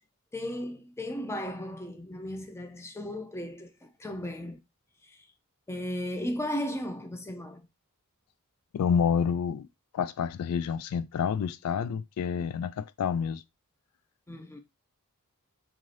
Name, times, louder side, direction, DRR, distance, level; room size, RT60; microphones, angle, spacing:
voice 1, 0.3-4.6 5.0-5.3 5.7-7.7 14.3-14.6, left 1 dB, 10° left, 0.4 m, -36 dB
voice 2, 8.7-9.7 9.9-13.4, left 7 dB, 90° left, 0.3 m, -28 dB
2.6 x 2.3 x 3.2 m
head